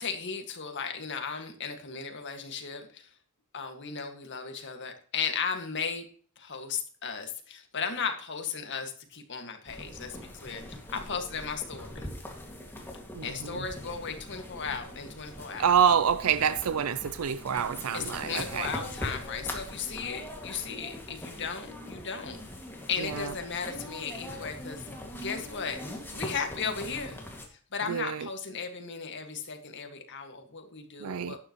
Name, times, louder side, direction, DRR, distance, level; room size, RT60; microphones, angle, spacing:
voice 1, 0.0-3.1 3.5-6.0 6.4-12.1 13.2-15.7 17.9-22.4 22.9-24.8 25.2-25.8 26.1-27.2 27.7-31.4, left 5 dB, 55° left, 1.9 m, -36 dB
sound 1, 9.7-27.5, left 1 dB, 10° left, 2.1 m, -42 dB
voice 2, 13.2-13.6 15.6-18.7 23.0-23.3 27.9-28.3 31.0-31.4, right 7 dB, 80° right, 0.5 m, -27 dB
11.5 x 9.7 x 3.1 m
head